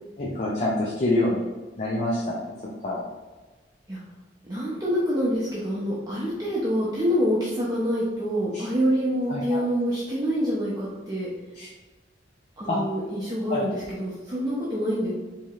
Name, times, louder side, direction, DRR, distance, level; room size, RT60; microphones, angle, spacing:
voice 1, 0.2-1.5 1.8-2.4 2.8-3.0 8.5-8.7 9.3-9.6 11.6-11.7 12.7-12.8 13.5-13.8, left 1 dB, 40° left, -4 dB, 0.5 m, -26 dB
voice 2, 4.4-11.3 12.6-15.1, equal, 20° right, -8 dB, 0.6 m, -26 dB
4.6 x 2.8 x 2.4 m, 1.3 s
head